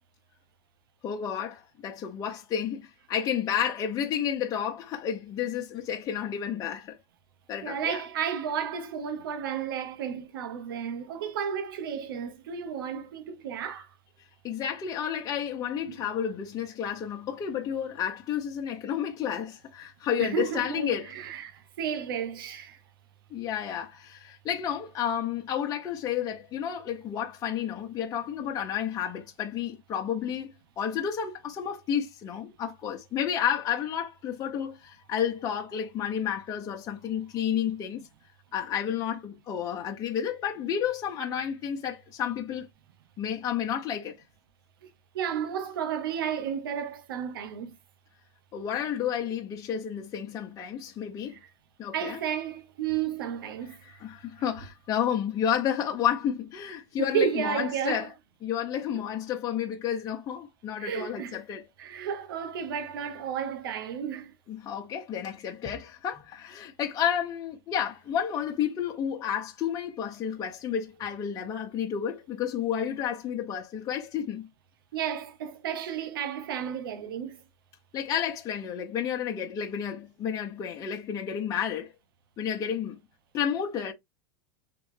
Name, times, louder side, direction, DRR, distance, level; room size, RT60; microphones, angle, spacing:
voice 1, 1.0-7.0 7.5-8.0 14.4-21.1 23.3-38.1 38.5-42.7 43.2-44.2 48.5-51.4 51.8-52.2 53.7-58.1 58.4-61.6 64.5-74.5 77.9-81.9 82.4-83.0 83.3-83.9, left 9 dB, 30° left, 0.8 m, -31 dB
voice 2, 7.6-13.9 15.9-16.0 20.2-22.8 45.1-47.8 51.3-51.5 51.9-54.0 57.0-58.1 60.8-61.4 61.8-64.3 74.9-77.4, right 8 dB, 80° right, 0.8 m, -32 dB
3.4 x 3.0 x 3.2 m
supercardioid pair, 120°, 12 cm